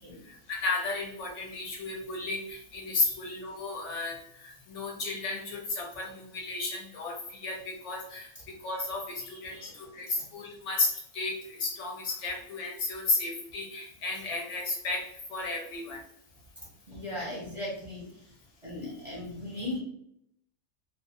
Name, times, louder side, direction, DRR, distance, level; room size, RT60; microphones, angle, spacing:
voice 1, 0.3-8.3 8.6-16.0, left 3 dB, 70° left, 0 dB, 0.8 m, -33 dB
voice 2, 9.2-9.7 16.9-18.1 18.6-19.8, left 1 dB, 30° right, -7 dB, 0.7 m, -38 dB
2.4 x 2.3 x 2.7 m, 0.73 s
omnidirectional pair, 1.4 m